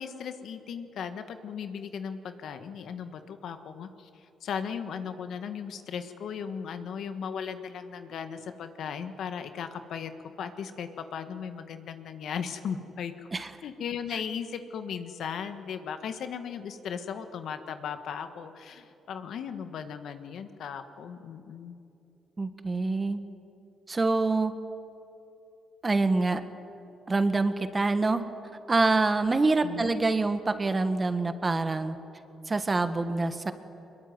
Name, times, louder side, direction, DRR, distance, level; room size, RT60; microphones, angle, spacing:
voice 1, 0.0-4.1 4.4-10.1 10.4-21.8 29.6-29.9, left 7 dB, 70° left, 8 dB, 1.6 m, -37 dB
voice 2, 22.4-23.2 23.9-24.5 25.8-26.4 27.1-28.2 28.7-32.0 32.5-33.5, right 3 dB, 25° right, 9 dB, 1.7 m, -26 dB
22.5 x 21.5 x 9.5 m, 2.8 s
cardioid pair, 90°, 0 cm